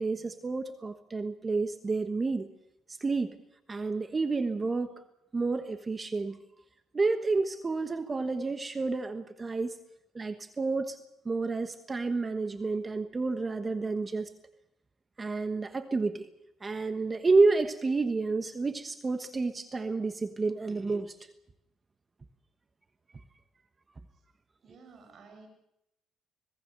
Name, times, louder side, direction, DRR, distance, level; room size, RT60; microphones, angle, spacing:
voice 1, 0.0-2.5 3.0-3.4 3.7-4.9 5.3-6.4 6.9-9.7 10.1-11.0 11.2-14.3 15.2-16.3 16.6-21.1, right 3 dB, 25° right, 9 dB, 1.3 m, -29 dB
voice 2, 24.6-25.5, right 4 dB, 50° right, 5 dB, 7.7 m, -53 dB
26.5 x 19.0 x 6.7 m, 0.82 s
cardioid pair, 90°, 0 cm